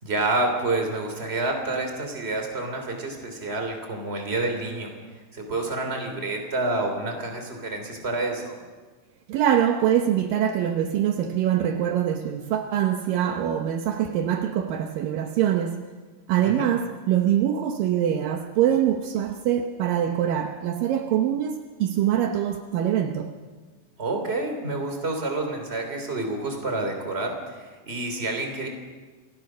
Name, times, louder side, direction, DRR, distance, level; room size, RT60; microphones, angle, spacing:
voice 1, 0.0-8.6 16.4-16.7 24.0-28.7, right 2 dB, 15° right, 2.7 m, -28 dB
voice 2, 9.3-15.9 16.3-23.4, right 10 dB, 90° right, 1.9 m, -24 dB
28.5 x 17.5 x 6.3 m
omnidirectional pair, 5.4 m